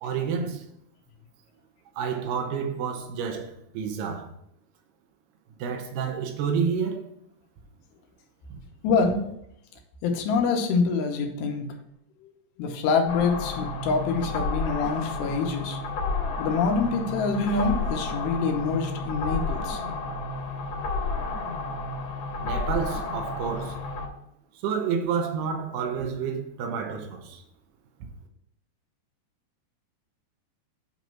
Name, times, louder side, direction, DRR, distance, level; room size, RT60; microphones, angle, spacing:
voice 1, 0.0-0.6 2.0-4.3 5.6-7.0 8.5-8.6 22.4-23.8 24.6-27.4, right 6 dB, 75° right, 2.2 m, -29 dB
voice 2, 8.8-9.2 10.0-11.7 12.2-12.3 12.6-15.8 16.4-19.8, left 4 dB, 90° left, 2.9 m, -25 dB
sound 1, 13.1-24.1, left 3 dB, 65° left, 2.0 m, -31 dB
8.3 x 3.0 x 5.9 m
omnidirectional pair, 4.8 m